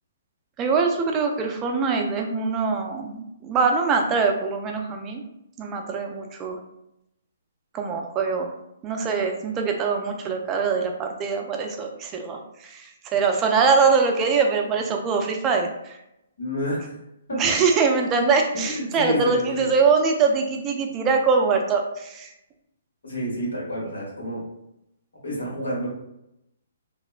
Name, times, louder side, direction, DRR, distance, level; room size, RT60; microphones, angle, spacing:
voice 1, 0.6-5.2 5.6-6.6 7.7-8.5 8.8-16.0 17.3-22.3, right 5 dB, 25° right, 3 dB, 0.3 m, -23 dB
voice 2, 16.4-17.0 17.3-17.4 18.5-19.7 23.0-24.4 25.2-25.9, equal, 80° left, -5 dB, 1.3 m, -29 dB
2.8 x 2.0 x 2.3 m, 0.84 s
hypercardioid pair, 140°, 0 cm